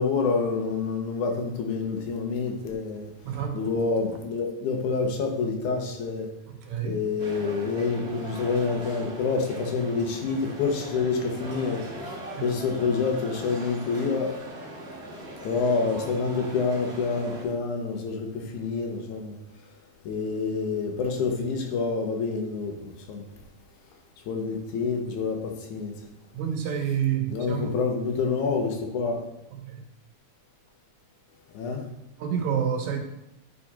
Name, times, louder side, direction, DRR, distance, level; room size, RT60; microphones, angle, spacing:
voice 1, 0.0-3.1 3.5-6.3 6.8-14.3 15.4-19.4 20.1-23.2 24.3-26.0 27.3-29.2 31.5-31.9, left 4 dB, 85° left, 2 dB, 2.4 m, -27 dB
voice 2, 3.2-3.7 6.5-7.0 12.3-12.4 26.3-27.8 29.6-29.8 32.2-33.0, right 8 dB, 75° right, 4 dB, 2.2 m, -28 dB
sound 1, 7.2-17.4, right 1 dB, 40° right, 0.9 m, -40 dB
9.4 x 3.6 x 4.2 m, 0.88 s
omnidirectional pair, 3.5 m